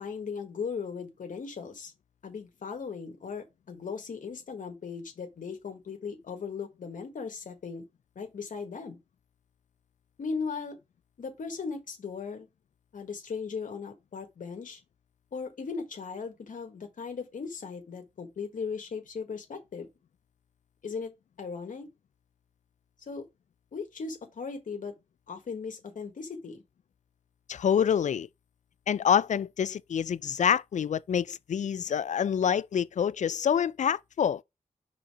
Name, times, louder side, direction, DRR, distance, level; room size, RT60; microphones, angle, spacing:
voice 1, 0.0-1.9 2.2-7.8 8.1-9.0 10.2-10.8 11.2-12.5 12.9-14.8 15.3-19.9 20.8-21.1 21.4-21.9 23.0-23.3 23.7-24.9 25.3-26.6, left 5 dB, 85° left, 1.6 m, -37 dB
voice 2, 27.5-28.3 28.9-34.4, left 8 dB, 65° left, 0.4 m, -26 dB
5.1 x 4.1 x 4.8 m
wide cardioid pair, 70°, 13 cm